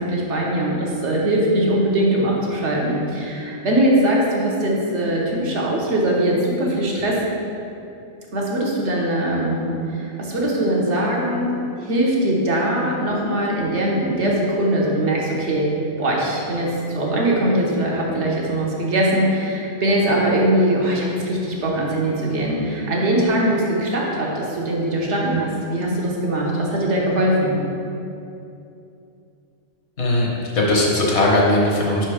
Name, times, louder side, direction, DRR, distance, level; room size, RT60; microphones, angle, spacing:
voice 1, 0.0-7.2 8.3-15.7 16.0-27.6, right 1 dB, 70° right, -3 dB, 1.3 m, -21 dB
voice 2, 30.0-32.1, left 1 dB, 65° left, -3 dB, 1.3 m, -19 dB
5.1 x 4.4 x 4.9 m, 2.7 s
omnidirectional pair, 1.3 m